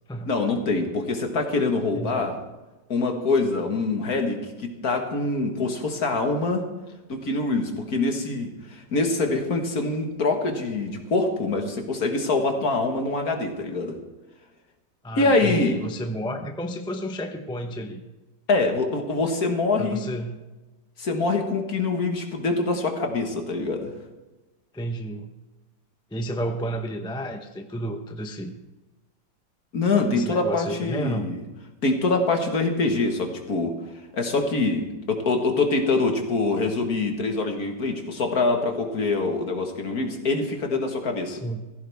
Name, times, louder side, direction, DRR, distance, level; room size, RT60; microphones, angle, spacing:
voice 1, 0.3-2.4 2.9-6.6 7.1-14.0 15.2-15.8 18.5-20.0 21.0-23.9 29.7-31.4 31.8-33.7 34.1-41.4, left 3 dB, 55° left, 4 dB, 2.1 m, -24 dB
voice 2, 1.9-2.3 15.0-18.0 19.8-20.4 24.7-25.3 26.1-28.6 30.1-31.3 41.3-41.6, right 1 dB, 5° left, 5 dB, 0.6 m, -31 dB
16.0 x 15.0 x 3.6 m, 1.1 s
omnidirectional pair, 2.0 m